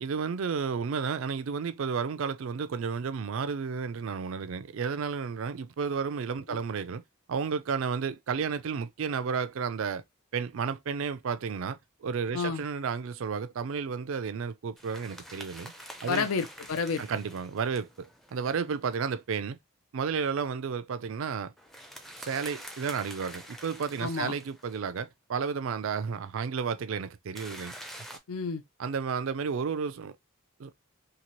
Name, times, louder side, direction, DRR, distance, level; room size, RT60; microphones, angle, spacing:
voice 1, 0.0-7.0 7.3-10.0 10.3-15.7 16.0-16.3 17.0-19.6 19.9-21.5 22.2-27.7 28.8-30.1 30.6-30.7, right 6 dB, 65° right, 0.4 m, -32 dB
sound 1, 14.8-19.1 21.6-24.9 27.4-28.2, equal, ahead, 0.4 m, -46 dB
voice 2, 16.1-17.0 24.0-24.3 28.3-28.6, left 5 dB, 80° left, 0.5 m, -30 dB
2.9 x 2.8 x 3.0 m
head